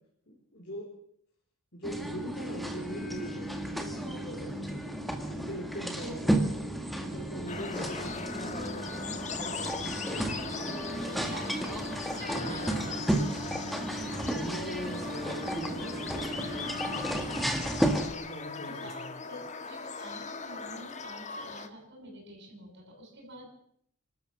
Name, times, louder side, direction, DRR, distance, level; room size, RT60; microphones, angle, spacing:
voice 1, 0.3-0.9 1.7-5.0 5.3-6.5 6.9-11.4 12.3-13.0 13.4-13.6 14.3-17.1 18.1-19.2, equal, 50° left, -2 dB, 4.4 m, -42 dB
sound 1, 1.8-18.1, right 1 dB, ahead, 1.9 m, -33 dB
sound 2, 7.5-21.7, left 5 dB, 35° left, 1.5 m, -40 dB
voice 2, 11.2-13.0 13.3-13.4 13.9-14.2 18.7-23.5, right 1 dB, 50° right, 0 dB, 7.2 m, -47 dB
28.5 x 13.0 x 7.2 m, 0.67 s
head